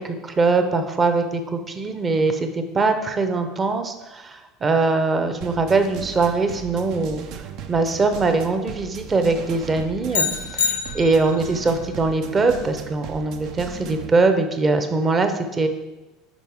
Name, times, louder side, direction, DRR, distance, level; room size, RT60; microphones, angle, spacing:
voice 1, 0.0-7.2 7.7-10.3 10.5-15.7, right 3 dB, 30° right, 7 dB, 0.8 m, -22 dB
sound 1, 5.4-14.1, right 8 dB, 60° right, 0.5 m, -37 dB
sound 2, 10.1-11.5, left 6 dB, 90° left, 0.5 m, -25 dB
5.3 x 4.7 x 4.7 m, 1.1 s
hypercardioid pair, 85°, 0 cm